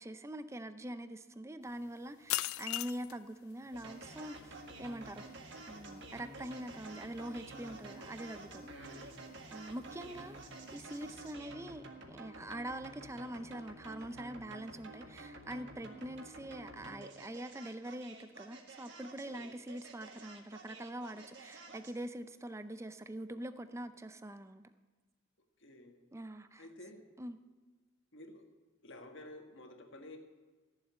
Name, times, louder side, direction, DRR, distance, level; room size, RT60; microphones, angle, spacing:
voice 1, 0.0-8.7 9.5-10.4 10.7-24.6 26.1-26.6 27.2-27.4, right 1 dB, 15° right, 0.5 m, -44 dB
sound 1, 1.7-11.3, left 16 dB, 85° left, 0.4 m, -45 dB
sound 2, 3.7-22.0, right 2 dB, 55° right, 1.8 m, -50 dB
voice 2, 7.6-8.1 8.7-9.1 9.9-10.2 19.2-19.5 25.6-26.0 26.6-27.0 28.1-28.5 28.8-30.2, left 1 dB, 60° left, 1.7 m, -52 dB
14.5 x 7.3 x 9.5 m
head